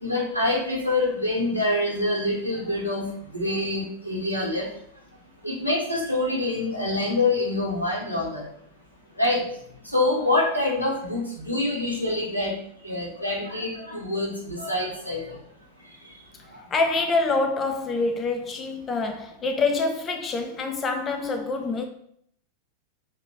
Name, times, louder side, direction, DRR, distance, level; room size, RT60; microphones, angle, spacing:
voice 1, 0.0-3.1 3.3-4.7 5.4-8.4 9.2-9.4 9.9-12.5 12.8-15.4, left 2 dB, 85° left, 1.3 m, -25 dB
voice 2, 16.5-21.9, left 3 dB, 25° left, 0.4 m, -26 dB
6.5 x 2.7 x 3.0 m
figure-of-eight pair, 90°, 0 cm